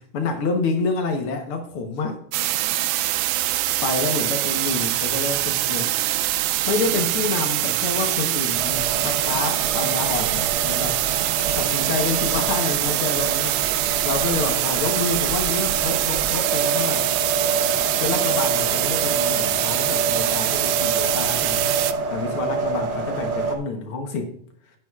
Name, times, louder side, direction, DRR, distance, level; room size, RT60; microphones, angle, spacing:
voice 1, 0.1-2.2 3.5-5.9 6.7-11.0 11.6-13.6 14.0-17.0 17.9-21.7 22.1-24.3, left 4 dB, 90° left, 4 dB, 1.2 m, -28 dB
sound 1, 2.3-21.9, right 15 dB, 90° right, 2.4 m, -24 dB
sound 2, 8.5-23.6, right 4 dB, 65° right, 1.3 m, -28 dB
12.0 x 9.6 x 2.4 m, 0.65 s
omnidirectional pair, 4.1 m